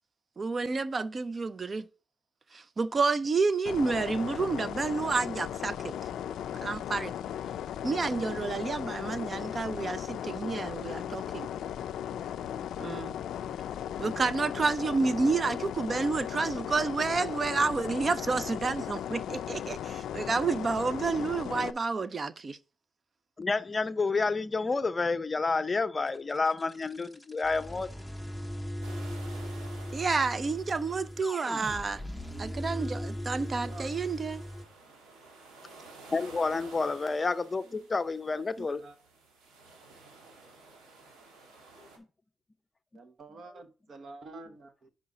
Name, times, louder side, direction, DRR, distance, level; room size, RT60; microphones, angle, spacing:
voice 1, 0.4-1.8 2.5-5.9 6.6-7.1 7.8-11.5 12.8-13.2 14.0-22.6 29.9-32.0 32.4-34.4, right 4 dB, 35° right, 0.5 m, -30 dB
sound 1, 3.7-21.7, left 10 dB, 75° left, 0.3 m, -37 dB
voice 2, 23.4-27.9 36.1-38.8, left 4 dB, 25° left, 0.6 m, -29 dB
sound 2, 26.1-34.7, equal, ahead, 0.8 m, -39 dB
sound 3, 28.8-42.0, right 3 dB, 85° right, 2.0 m, -53 dB
voice 3, 33.4-33.9 37.6-37.9 38.6-39.0 42.9-44.9, right 3 dB, 50° right, 1.1 m, -48 dB
5.4 x 5.0 x 4.9 m
cardioid pair, 90°, 0 cm